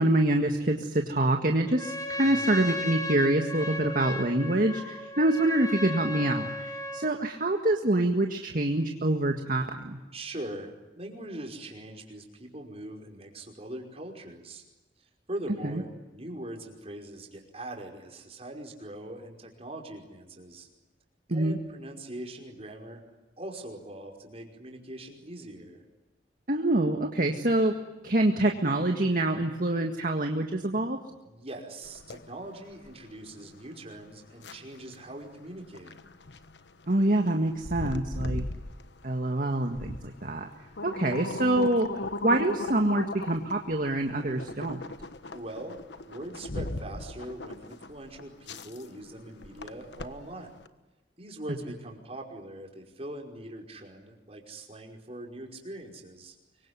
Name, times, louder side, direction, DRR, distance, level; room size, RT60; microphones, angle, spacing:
voice 1, 0.0-10.0 15.6-15.8 21.3-21.6 26.5-27.7 28.0-31.0 36.9-38.4 39.0-40.5 40.8-44.8, right 1 dB, 50° right, 3 dB, 1.9 m, -26 dB
Trumpet, 1.7-7.2, left 1 dB, 20° left, 2.9 m, -35 dB
voice 2, 2.2-2.6 10.1-14.6 15.0-20.7 21.3-23.0 23.4-25.8 31.2-36.0 45.3-50.6 51.2-56.4, right 1 dB, 35° right, 2 dB, 5.3 m, -42 dB
sound 1, 31.8-50.7, left 2 dB, 75° left, 1.3 m, -39 dB
25.5 x 23.5 x 9.7 m, 1.1 s
head